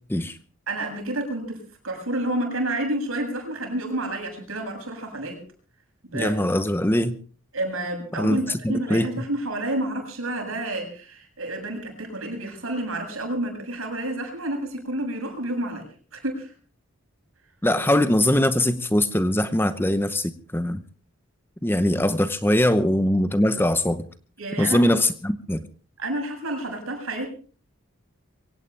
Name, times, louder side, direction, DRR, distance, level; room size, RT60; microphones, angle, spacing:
voice 1, 0.7-5.4 6.0-6.4 7.5-15.8 16.1-16.5 17.7-17.8 24.4-24.8 26.0-27.3, right 1 dB, 75° right, 7.3 m, -29 dB
voice 2, 6.1-7.2 8.2-8.4 8.6-9.1 17.6-20.8 21.6-24.1 24.6-25.6, left 1 dB, 10° left, 0.8 m, -22 dB
23.5 x 17.5 x 3.4 m
head